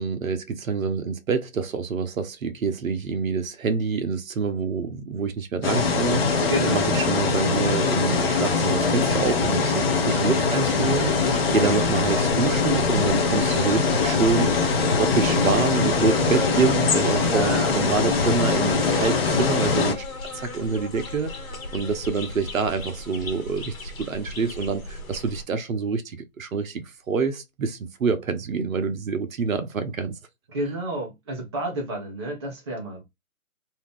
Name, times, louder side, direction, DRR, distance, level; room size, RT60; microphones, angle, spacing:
voice 1, 0.0-20.0 20.3-21.3 21.7-30.2, right 5 dB, 65° right, 0.8 m, -26 dB
sound 1, 5.6-19.9, left 4 dB, 40° left, 0.8 m, -22 dB
voice 2, 6.5-6.8 17.3-17.9 30.5-33.0, right 1 dB, 20° right, 0.6 m, -30 dB
sound 2, 10.9-25.4, left 3 dB, 70° left, 1.1 m, -36 dB
2.7 x 2.3 x 3.4 m
hypercardioid pair, 150°, 44 cm